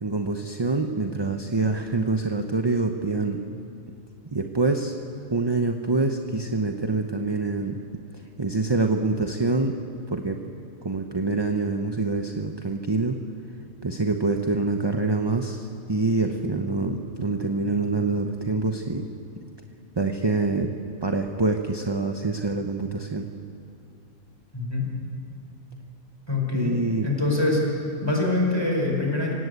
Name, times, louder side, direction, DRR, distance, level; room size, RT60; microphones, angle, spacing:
voice 1, 0.0-3.4 4.3-4.9 5.3-7.8 8.4-9.8 10.1-10.4 10.8-13.2 13.8-19.1 20.0-20.7 21.0-23.3 26.5-27.1, right 3 dB, 20° right, 4 dB, 0.8 m, -25 dB
voice 2, 24.5-24.9 26.3-26.7 27.0-27.6 28.0-29.3, left 2 dB, 20° left, -1 dB, 4.8 m, -24 dB
27.0 x 17.5 x 8.1 m, 2.6 s
omnidirectional pair, 1.4 m